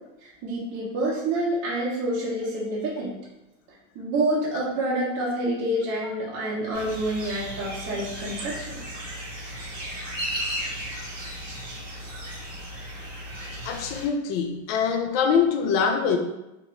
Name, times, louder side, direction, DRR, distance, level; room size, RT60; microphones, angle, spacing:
voice 1, 0.2-3.2 3.9-8.8, right 1 dB, 45° right, -6 dB, 0.8 m, -28 dB
sound 1, 6.7-14.0, equal, 25° right, 1.3 m, -35 dB
voice 2, 13.6-16.2, left 6 dB, 45° left, 5 dB, 0.5 m, -24 dB
2.6 x 2.5 x 3.1 m, 0.92 s
supercardioid pair, 120°, 38 cm